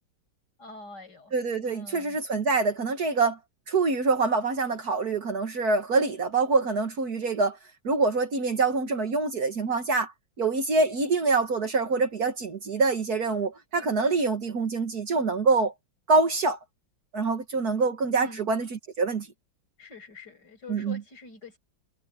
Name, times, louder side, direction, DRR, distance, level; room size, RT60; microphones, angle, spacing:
voice 1, 0.6-1.3 1.6-2.2 18.1-18.5 19.8-21.6, left 3 dB, 60° left, 7.5 m, -45 dB
voice 2, 1.3-3.4 3.7-7.6 7.8-10.1 10.4-15.7 16.1-16.6 17.1-19.3 20.7-21.0, right 3 dB, 55° right, 1.9 m, -25 dB
omnidirectional pair, 2.1 m